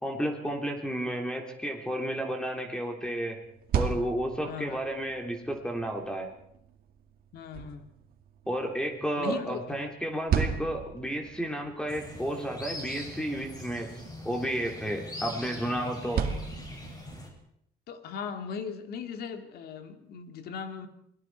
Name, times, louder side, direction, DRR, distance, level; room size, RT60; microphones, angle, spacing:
voice 1, 0.0-3.4 3.7-6.3 8.5-16.3, right 1 dB, 5° left, 2 dB, 3.1 m, -32 dB
sound 1, 3.4-17.4, right 7 dB, 60° right, 2.4 m, -37 dB
voice 2, 4.4-4.8 7.3-7.9 9.2-9.9 15.6-15.9 17.9-20.9, left 6 dB, 65° left, 7 dB, 2.6 m, -38 dB
sound 2, 11.9-17.3, left 1 dB, 25° left, 6.9 m, -42 dB
29.0 x 21.0 x 4.7 m, 0.72 s
cardioid pair, 110°, 17 cm